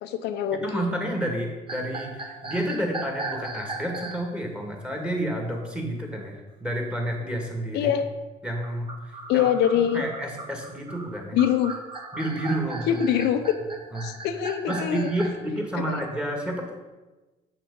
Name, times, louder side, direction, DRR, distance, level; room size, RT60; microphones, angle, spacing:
voice 1, 0.0-0.9 7.7-8.0 9.3-10.0 11.3-11.7 12.9-13.6 14.0-15.1 15.9-16.0, left 9 dB, 80° left, 7 dB, 0.7 m, -24 dB
voice 2, 0.5-7.9 8.4-9.5 9.9-11.4 12.1-13.0 13.9-14.1 14.7-16.7, right 1 dB, 5° right, 1 dB, 1.9 m, -30 dB
sound 1, 1.7-4.3 8.6-15.3, right 3 dB, 30° right, 1.3 m, -37 dB
7.5 x 5.9 x 5.4 m, 1.2 s
cardioid pair, 110°, 17 cm